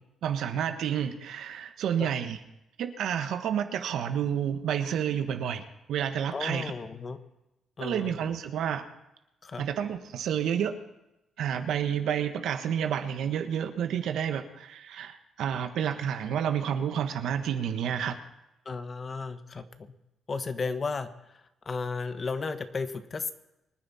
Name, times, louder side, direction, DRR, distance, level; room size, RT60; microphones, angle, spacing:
voice 1, 0.2-2.4 2.8-6.7 7.8-8.9 9.6-10.8 11.4-18.2, right 9 dB, 75° right, 8 dB, 1.4 m, -30 dB
voice 2, 6.3-7.2 7.8-8.2 9.4-9.6 18.6-19.9 20.3-21.1 21.6-23.3, left 4 dB, 35° left, 9 dB, 1.3 m, -34 dB
24.5 x 9.7 x 4.3 m, 0.91 s
cardioid pair, 90°, 0 cm